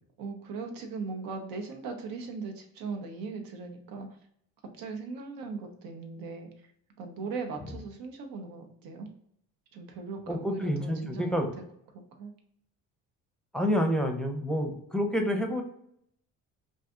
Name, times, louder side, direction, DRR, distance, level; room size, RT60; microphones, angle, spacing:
voice 1, 0.2-4.1 4.8-6.5 7.0-9.1 9.7-11.5 11.9-12.3, right 4 dB, 75° right, 4 dB, 0.7 m, -39 dB
voice 2, 10.3-11.5 13.5-15.6, equal, ahead, 3 dB, 0.6 m, -28 dB
2.6 x 2.4 x 3.5 m, 0.70 s
supercardioid pair, 80°, 35 cm